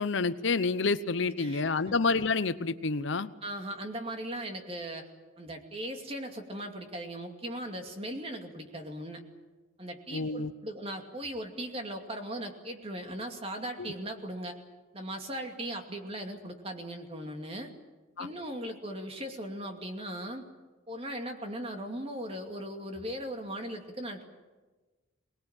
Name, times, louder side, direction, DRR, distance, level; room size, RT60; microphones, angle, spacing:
voice 1, 0.0-3.3 10.1-10.5 13.8-13.9 18.2-18.3, left 4 dB, 65° left, 13 dB, 0.8 m, -28 dB
voice 2, 1.4-2.0 3.4-5.1 5.4-9.2 9.8-14.6 14.9-17.7 18.2-20.5 20.9-24.2, right 1 dB, 30° right, 4 dB, 2.5 m, -38 dB
24.0 x 19.5 x 8.9 m, 1.2 s
head